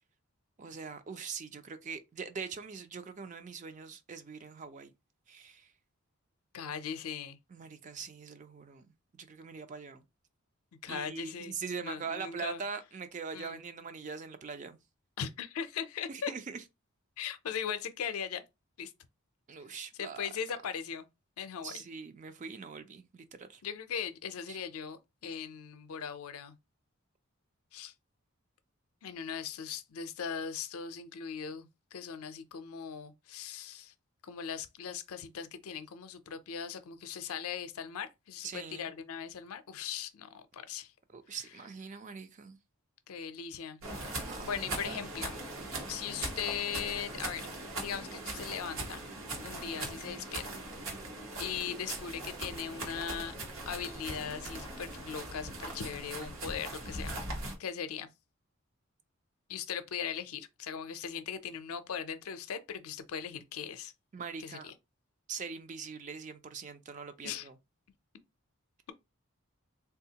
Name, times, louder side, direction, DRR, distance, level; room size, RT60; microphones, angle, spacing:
voice 1, 0.6-4.9 5.3-5.7 7.5-8.9 9.2-10.0 10.9-14.8 16.1-16.6 19.5-20.2 21.6-23.6 24.5-24.6 38.4-38.9 41.1-42.6 44.2-45.0 49.7-50.0 64.1-64.7 65.3-67.5, right 5 dB, 35° right, 0.3 m, -42 dB
voice 2, 6.5-7.4 10.8-11.6 11.8-12.6 13.3-13.6 15.2-16.3 17.2-18.4 18.8-18.9 19.9-21.1 21.4-21.8 23.6-26.6 27.7-27.9 29.0-33.9 34.2-40.9 41.3-41.4 43.1-43.8 44.4-45.4 45.9-47.5 47.8-49.0 49.4-50.6 51.4-53.3 53.7-57.1 57.6-58.1 59.5-63.9 64.4-64.7 67.2-67.5, left 7 dB, 80° left, 0.5 m, -39 dB
sound 1, 43.8-57.6, right 2 dB, 70° right, 1.1 m, -40 dB
3.5 x 2.3 x 2.8 m
head